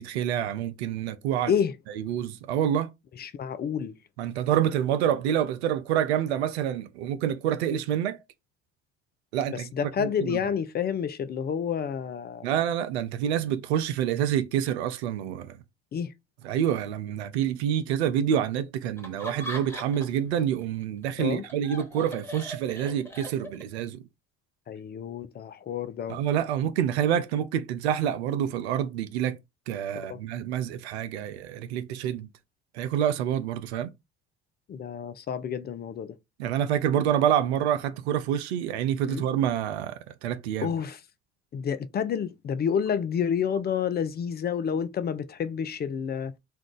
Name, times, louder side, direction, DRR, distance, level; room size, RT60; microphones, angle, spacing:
voice 1, 0.1-1.5 2.0-2.9 4.2-8.2 9.3-9.7 10.0-10.4 12.4-15.6 16.4-24.0 26.1-29.4 29.7-32.3 32.7-33.9 36.4-40.7, right 10 dB, 80° right, 0.5 m, -27 dB
voice 2, 3.2-4.0 9.5-12.5 15.9-16.1 21.2-21.4 24.7-26.2 30.0-30.2 34.7-36.2 39.1-39.2 40.6-41.0 41.5-46.3, left 7 dB, 30° left, 0.4 m, -29 dB
Laughter, 19.0-20.3 20.6-23.8, equal, 10° left, 1.3 m, -40 dB
2.7 x 2.3 x 3.5 m
hypercardioid pair, 55°, 33 cm